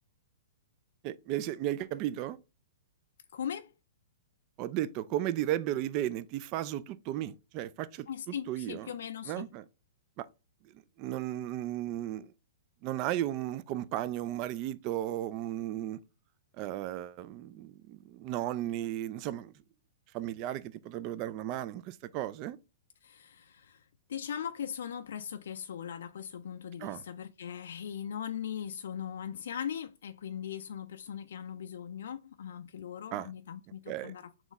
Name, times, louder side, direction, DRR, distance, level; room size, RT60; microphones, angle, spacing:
voice 1, 1.0-2.4 4.6-8.1 8.5-8.9 9.3-9.6 10.2-10.3 11.0-12.3 12.8-16.0 16.6-19.5 20.1-22.6 26.8-27.0 33.1-33.3 33.9-34.1, right 13 dB, 40° right, 0.3 m, -34 dB
voice 2, 3.3-3.7 8.1-9.5 23.0-23.8 24.1-34.5, left 8 dB, 75° left, 0.3 m, -39 dB
4.0 x 3.1 x 3.8 m
hypercardioid pair, 130°, 0 cm